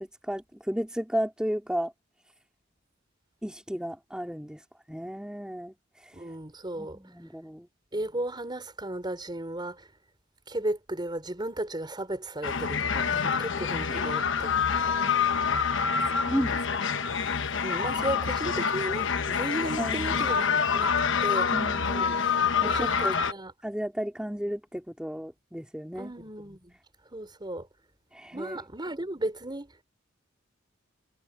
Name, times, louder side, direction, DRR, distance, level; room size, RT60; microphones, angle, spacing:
voice 1, 0.0-1.9 3.4-6.3 6.7-7.7 13.9-14.1 16.3-16.9 18.0-18.1 19.8-20.6 21.5-22.2 22.6-23.2 23.6-26.1 28.1-28.7, equal, 5° right, 3.0 m, -34 dB
voice 2, 6.1-7.0 7.9-9.9 10.5-14.6 17.6-20.9 21.2-21.5 21.8-22.1 22.6-23.5 25.9-26.7 27.1-27.7 28.3-29.8, right 1 dB, 25° right, 4.9 m, -35 dB
sound 1, 12.4-23.3, left 6 dB, 70° left, 1.1 m, -27 dB
head